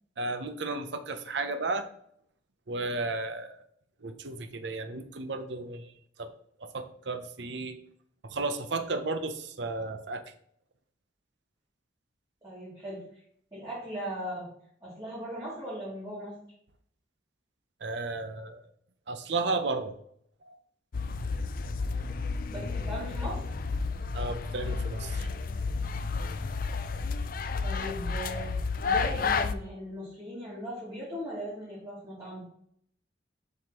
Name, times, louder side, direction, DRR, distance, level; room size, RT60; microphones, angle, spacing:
voice 1, 0.2-1.8 2.7-3.6 4.0-5.9 6.2-6.3 6.6-7.8 8.2-10.2 17.8-18.6 19.1-20.0 20.5-20.6 24.1-25.3, right 3 dB, 65° right, 9 dB, 0.7 m, -33 dB
voice 2, 12.4-13.0 13.5-14.5 14.8-16.3 22.5-23.4 27.6-28.5 28.8-32.4, equal, 20° right, -10 dB, 2.7 m, -38 dB
sound 1, 20.9-29.5, left 4 dB, 50° left, 0.4 m, -31 dB
7.6 x 5.6 x 3.0 m, 0.66 s
head